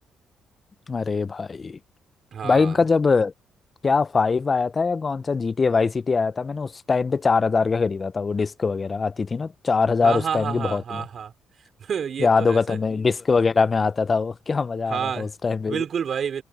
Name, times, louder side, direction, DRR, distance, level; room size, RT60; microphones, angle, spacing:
voice 1, 0.9-1.8 2.4-3.3 3.8-11.0 12.2-15.8, left 4 dB, 35° left, 0.6 m, -22 dB
voice 2, 2.3-2.8 10.0-11.3 11.8-12.8 14.9-15.3 15.7-16.4, right 7 dB, 60° right, 4.3 m, -29 dB
cardioid pair, 75°, 0 cm